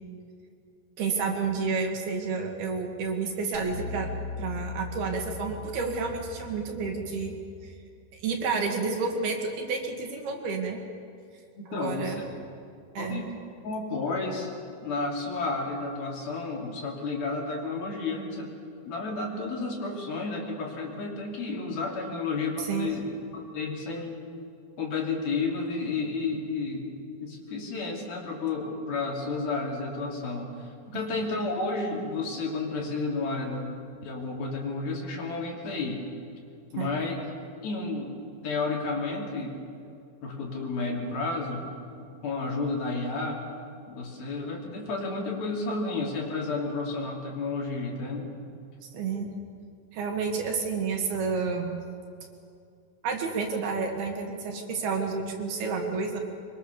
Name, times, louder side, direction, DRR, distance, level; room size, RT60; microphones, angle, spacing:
voice 1, 1.0-4.1 4.4-7.3 7.6-7.7 8.2-10.8 11.7-12.2 13.0-13.2 22.6-22.9 36.8-36.9 48.9-49.3 49.9-51.8 53.0-56.2, right 4 dB, 65° right, 2 dB, 3.7 m, -30 dB
sound 1, 3.5-7.9, left 4 dB, 45° right, 1.6 m, -39 dB
voice 2, 11.6-12.2 13.0-13.3 13.6-14.5 14.8-18.5 18.9-23.0 23.3-24.2 24.8-26.9 27.2-33.7 34.0-36.0 36.7-37.2 37.6-38.1 38.4-39.6 40.2-41.7 42.2-43.4 43.9-48.3, left 3 dB, 60° left, -1 dB, 4.7 m, -31 dB
24.5 x 23.5 x 6.9 m, 2.4 s
omnidirectional pair, 5.1 m